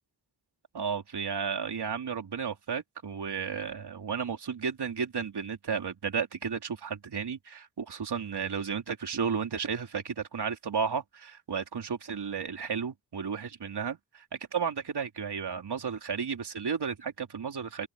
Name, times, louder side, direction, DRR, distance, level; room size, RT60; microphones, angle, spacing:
voice 1, 0.7-17.9, right 6 dB, 70° right, 3.7 m, -33 dB
open air
wide cardioid pair, 85°, 41 cm